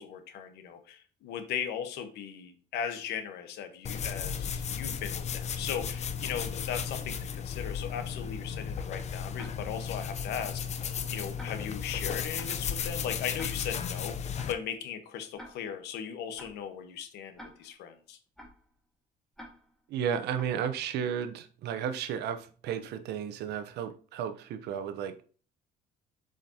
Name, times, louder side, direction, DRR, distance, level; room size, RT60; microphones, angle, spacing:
voice 1, 0.0-18.2, left 8 dB, 85° left, 8 dB, 1.2 m, -38 dB
sound 1, 3.8-14.5, left 7 dB, 40° left, 0.7 m, -35 dB
Tick-tock, 9.3-9.8 10.4-10.7 11.4-11.8 12.4-12.7 13.4-13.8 14.4-14.7 15.4-15.8 16.4-16.7 17.4-17.8 18.4-18.7 19.3-19.8 20.3-20.7, equal, 5° left, 2.0 m, -50 dB
voice 2, 19.9-25.2, right 8 dB, 80° right, 10 dB, 0.8 m, -33 dB
7.2 x 5.1 x 2.8 m, 0.41 s
cardioid pair, 110°, 17 cm